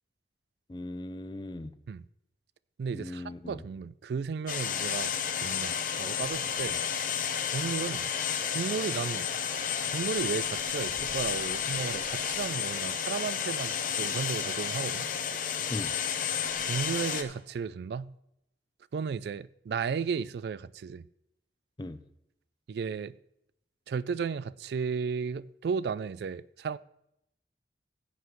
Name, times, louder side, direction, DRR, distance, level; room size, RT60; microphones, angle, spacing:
voice 1, 0.7-1.7 2.9-3.6 15.7-15.9 21.8-22.0, left 1 dB, 25° left, 0.4 m, -38 dB
voice 2, 2.8-6.8 7.5-8.1 8.5-9.3 9.9-15.1 16.7-18.1 18.9-21.1 22.7-23.1 23.9-26.8, right 6 dB, 70° right, 0.3 m, -34 dB
sound 1, 4.5-17.2, left 8 dB, 50° left, 0.8 m, -31 dB
15.5 x 7.8 x 3.1 m
head